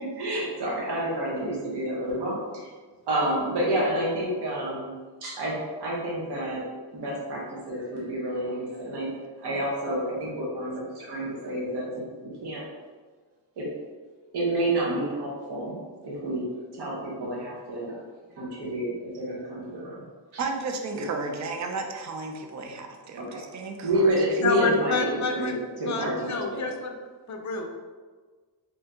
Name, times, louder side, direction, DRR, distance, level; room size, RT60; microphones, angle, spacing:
voice 1, 0.0-2.7 3.1-4.9 5.2-5.5 5.8-6.6 6.9-7.4 7.7-9.1 9.4-12.6 13.6-13.7 14.3-15.8 16.0-16.5 16.7-18.0 18.4-20.0 20.3-20.4 23.2-23.4 23.8-26.1 26.5-26.7, right 1 dB, 65° right, -5 dB, 0.9 m, -29 dB
voice 2, 20.4-24.4, right 3 dB, 45° right, 4 dB, 0.5 m, -34 dB
voice 3, 24.4-25.6 25.9-26.9 27.3-27.7, left 3 dB, 45° left, 3 dB, 0.5 m, -28 dB
2.7 x 2.7 x 3.4 m, 1.5 s
cardioid pair, 100°, 43 cm